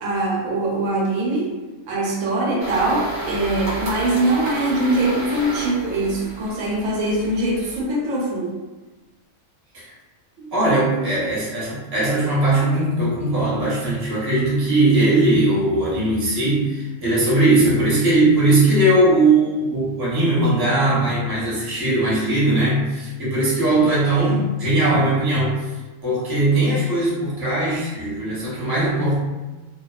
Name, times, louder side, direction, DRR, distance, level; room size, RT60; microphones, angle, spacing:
voice 1, 0.0-1.5 1.9-8.5, right 2 dB, 85° right, -3 dB, 1.1 m, -22 dB
sound 1, 2.6-7.9, right 2 dB, 60° right, 0.7 m, -31 dB
voice 2, 10.4-25.7 26.0-29.2, right 2 dB, 20° right, -9 dB, 0.7 m, -19 dB
2.4 x 2.2 x 2.3 m, 1.2 s
omnidirectional pair, 1.4 m